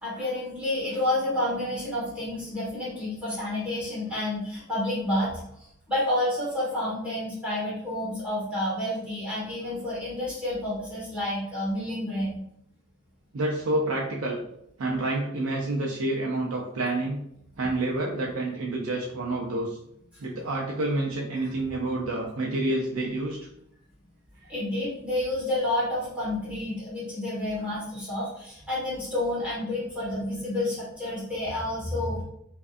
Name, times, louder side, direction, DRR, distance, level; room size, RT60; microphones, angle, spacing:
voice 1, 0.0-12.4 17.6-17.7 20.3-20.4 21.4-21.5 24.5-32.2, left 1 dB, 5° right, -9 dB, 1.3 m, -30 dB
voice 2, 13.3-14.4 14.8-17.2 17.6-19.8 20.2-23.4, right 2 dB, 75° right, -1 dB, 0.5 m, -28 dB
4.9 x 2.5 x 2.4 m, 0.76 s
head